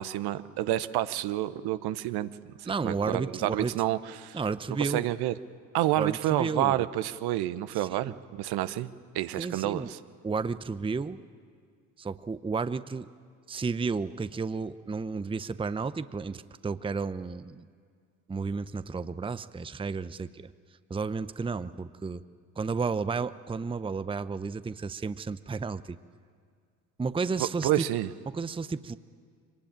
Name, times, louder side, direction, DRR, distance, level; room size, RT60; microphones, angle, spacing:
voice 1, 0.0-2.3 2.6-4.4 4.8-5.3 5.7-10.0 27.4-28.1, right 14 dB, 65° right, 13 dB, 1.0 m, -29 dB
voice 2, 2.7-3.7 4.3-5.1 6.0-6.9 7.8-8.2 9.4-9.9 10.2-11.2 12.0-13.1 13.5-17.7 18.3-20.5 20.9-22.2 22.6-26.0 27.0-27.8 28.3-28.9, right 4 dB, 15° right, 14 dB, 0.7 m, -32 dB
24.0 x 19.5 x 8.9 m, 2.1 s
hypercardioid pair, 60°, 42 cm